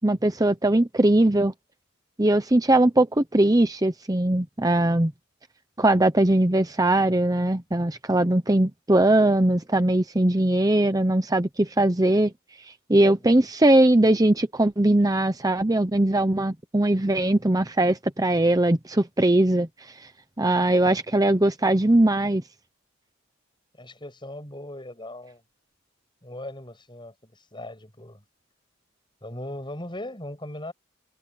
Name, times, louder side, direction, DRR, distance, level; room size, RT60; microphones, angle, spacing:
voice 1, 0.0-1.5 2.2-5.1 5.8-12.3 12.9-19.7 20.0-20.1 20.4-22.4, right 1 dB, 15° right, 0.8 m, -20 dB
voice 2, 23.8-25.4 26.2-28.2 29.2-30.7, left 1 dB, 20° left, 7.8 m, -38 dB
head